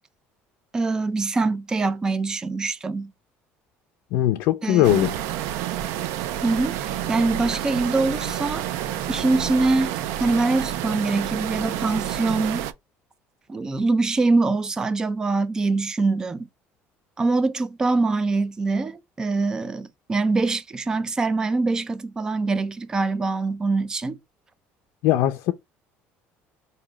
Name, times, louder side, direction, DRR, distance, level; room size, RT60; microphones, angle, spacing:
voice 1, 0.7-3.1 4.6-5.1 6.4-8.7 9.1-12.7 13.5-16.5 17.2-24.2, right 3 dB, 15° right, 0.3 m, -24 dB
voice 2, 4.1-5.2 25.0-25.5, left 13 dB, 70° left, 0.4 m, -20 dB
sound 1, 4.8-12.7, right 11 dB, 90° right, 0.4 m, -29 dB
4.9 x 2.7 x 3.0 m
cardioid pair, 170°, 5 cm